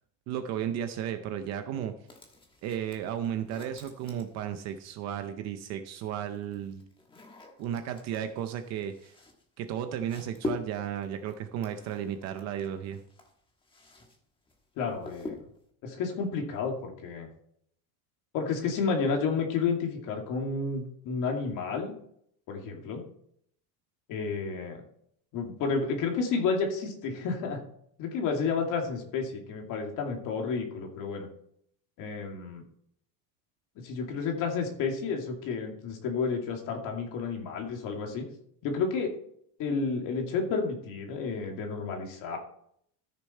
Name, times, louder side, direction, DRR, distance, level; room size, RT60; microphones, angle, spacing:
voice 1, 0.3-1.9 2.6-6.8 7.6-9.1 9.6-13.0, right 9 dB, 35° right, 8 dB, 0.6 m, -34 dB
sound 1, 2.1-4.9 5.9-14.2 14.5-15.7, left 2 dB, 10° left, 1.3 m, -44 dB
voice 2, 14.8-15.4 15.8-17.3 18.3-21.9 22.5-23.0 24.1-24.8 25.3-27.6 28.0-31.3 32.0-32.7 33.8-38.3 38.6-39.1 39.6-42.4, left 5 dB, 40° left, 2 dB, 2.4 m, -31 dB
13.5 x 6.9 x 4.3 m, 0.67 s
cardioid pair, 180°, 47 cm